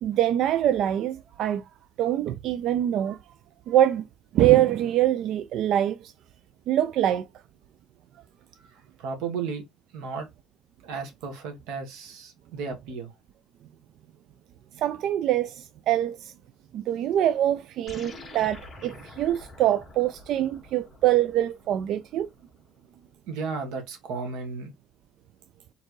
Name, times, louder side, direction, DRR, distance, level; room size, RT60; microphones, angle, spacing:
voice 1, 0.0-1.6 2.0-3.2 3.7-4.1 4.3-6.1 6.7-7.3 14.8-16.3 16.7-22.3, right 12 dB, 60° right, 0.3 m, -24 dB
voice 2, 9.0-9.6 9.9-10.3 10.8-13.1 23.3-24.7, right 5 dB, 90° right, 1.7 m, -34 dB
sound 1, 17.9-22.5, left 2 dB, 20° left, 1.7 m, -47 dB
4.3 x 3.9 x 3.1 m
cardioid pair, 150°, 0 cm